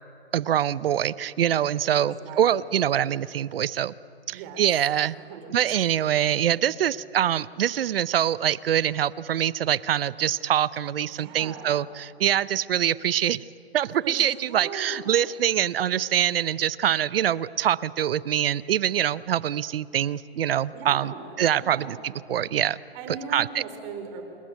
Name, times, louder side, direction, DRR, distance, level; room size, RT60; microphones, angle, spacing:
voice 1, 0.3-3.9 4.3-5.1 5.5-13.4 13.7-22.0 22.3-22.8 23.3-23.6, right 10 dB, 65° right, 20 dB, 0.7 m, -24 dB
voice 2, 1.9-2.7 4.3-4.6 5.2-6.3 11.2-11.8 14.0-15.0 20.7-22.0 22.9-24.2, right 5 dB, 35° right, 6 dB, 3.9 m, -40 dB
27.5 x 21.0 x 9.3 m, 2.7 s
hypercardioid pair, 135°, 31 cm